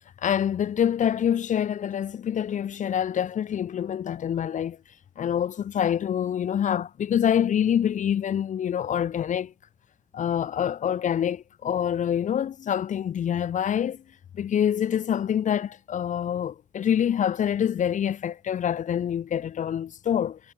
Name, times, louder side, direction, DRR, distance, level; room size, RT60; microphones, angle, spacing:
voice 1, 0.2-4.8 5.2-9.5 10.1-14.0 14.3-20.4, left 9 dB, 65° left, 0.6 m, -26 dB
wide cardioid pair, 110°, 14 cm